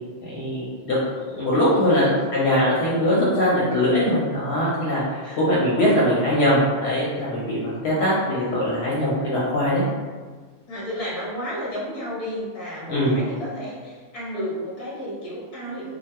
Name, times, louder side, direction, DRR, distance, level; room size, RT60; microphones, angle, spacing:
voice 1, 0.3-1.0 1.3-5.0 5.4-9.8 12.9-13.2, left 1 dB, 65° left, -7 dB, 0.8 m, -21 dB
voice 2, 10.7-16.0, equal, 35° left, -7 dB, 0.7 m, -32 dB
2.2 x 2.2 x 2.9 m, 1.5 s
omnidirectional pair, 1.3 m